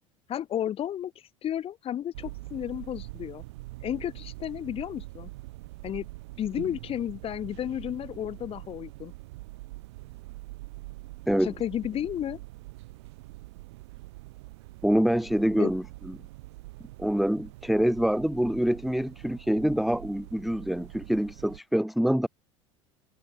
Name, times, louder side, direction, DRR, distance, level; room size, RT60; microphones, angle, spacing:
voice 1, 0.3-1.1 1.4-3.4 3.8-5.3 5.8-6.1 6.4-9.1 11.4-12.4 15.6-15.7, left 10 dB, 35° left, 3.1 m, -32 dB
sound 1, 2.1-21.6, right 21 dB, 60° right, 3.7 m, -44 dB
voice 2, 14.8-16.2 17.0-22.3, equal, ahead, 0.7 m, -26 dB
figure-of-eight pair, 70°, 16 cm